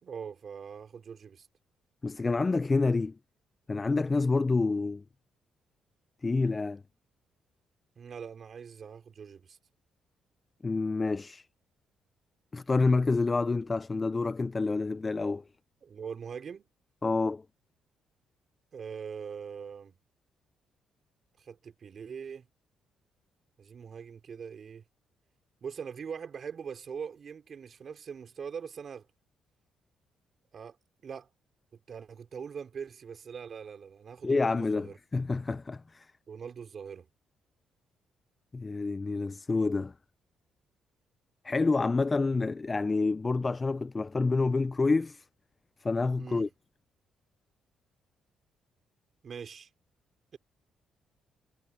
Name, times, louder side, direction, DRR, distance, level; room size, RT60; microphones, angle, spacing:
voice 1, 0.0-1.5 8.0-9.6 15.8-16.7 18.7-20.0 21.4-22.5 23.6-24.8 25.6-29.1 30.5-30.8 31.0-31.3 31.9-35.0 36.3-37.1 46.2-46.5 49.2-49.7, right 6 dB, 50° right, 4.9 m, -42 dB
voice 2, 2.0-3.2 3.7-5.0 6.2-6.8 10.6-11.5 12.5-15.4 17.0-17.4 34.2-36.1 38.5-39.9 41.4-45.2 45.8-46.5, left 3 dB, 25° left, 0.4 m, -28 dB
cardioid pair, 90°, 0 cm